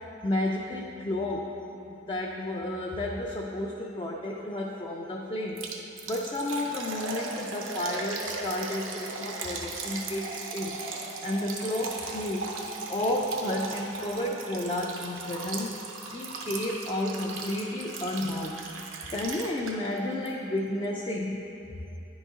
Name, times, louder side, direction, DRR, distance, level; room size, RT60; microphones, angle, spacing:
voice 1, 0.2-1.5 1.9-5.7 6.1-10.8 11.2-12.5 12.9-18.6 19.1-21.4 21.7-21.8, left 1 dB, 25° left, -2 dB, 0.4 m, -32 dB
Liquid, 5.6-20.0 20.3-20.4 20.8-20.9, right 3 dB, 85° right, 0.7 m, -37 dB
9.9 x 4.0 x 3.6 m, 2.9 s
head